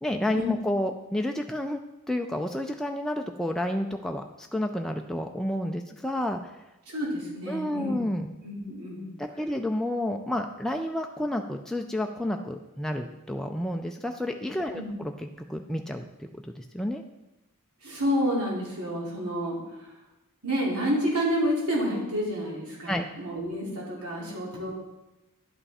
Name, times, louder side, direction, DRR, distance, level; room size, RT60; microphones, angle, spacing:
voice 1, 0.0-1.8 2.1-6.5 7.5-8.3 9.2-17.0 22.9-23.0, left 1 dB, ahead, 3 dB, 0.3 m, -30 dB
voice 2, 6.9-8.0 8.4-9.1 14.7-14.9 17.8-19.6 20.4-24.7, equal, 85° right, -3 dB, 2.8 m, -29 dB
11.0 x 5.7 x 4.2 m, 0.98 s
head